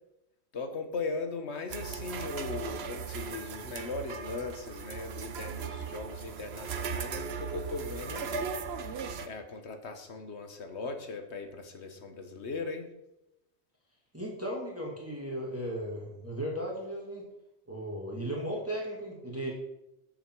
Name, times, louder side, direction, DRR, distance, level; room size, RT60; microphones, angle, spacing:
voice 1, 0.5-8.5 9.2-12.9, left 4 dB, 85° left, 6 dB, 1.6 m, -38 dB
sound 1, 1.7-9.3, right 6 dB, 70° right, 1.0 m, -38 dB
voice 2, 14.1-17.2 17.7-19.5, equal, 15° right, -3 dB, 2.2 m, -36 dB
13.5 x 7.0 x 4.7 m, 0.90 s
omnidirectional pair, 1.1 m